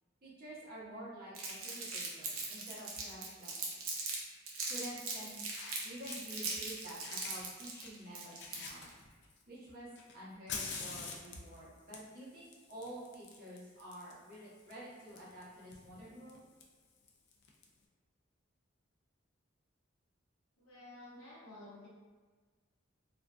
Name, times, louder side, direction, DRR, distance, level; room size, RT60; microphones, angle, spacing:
voice 1, 0.2-3.5 3.9-4.1 4.7-5.4 5.8-8.9 9.5-9.9 10.1-16.4, right 1 dB, 45° right, -7 dB, 0.7 m, -49 dB
Crumpling crinkling, 1.3-4.2 4.5-8.9, right 4 dB, 80° right, 0.5 m, -40 dB
Fire, 2.5-2.7 4.1-4.2 5.2-5.3 5.5-6.7 7.0-9.4 10.0-17.6, left 4 dB, 55° left, 0.3 m, -48 dB
voice 2, 20.6-21.9, left 2 dB, 80° left, -6 dB, 0.8 m, -52 dB
2.5 x 2.2 x 2.3 m, 1.4 s
head